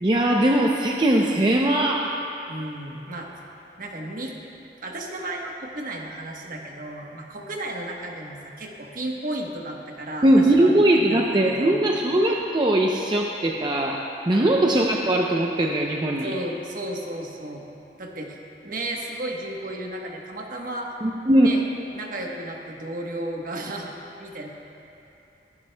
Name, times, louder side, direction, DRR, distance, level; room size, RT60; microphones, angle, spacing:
voice 1, 0.0-2.1 10.2-14.0 14.3-16.3 21.0-21.5, right 1 dB, 25° right, -1 dB, 0.6 m, -20 dB
voice 2, 2.5-3.3 3.8-4.3 4.8-11.8 14.3-14.6 16.2-17.7 18.0-18.4 18.6-20.9 21.4-21.6 21.9-23.9 24.2-24.5, right 1 dB, 50° right, 0 dB, 1.2 m, -33 dB
21.5 x 12.0 x 2.3 m, 2.9 s
head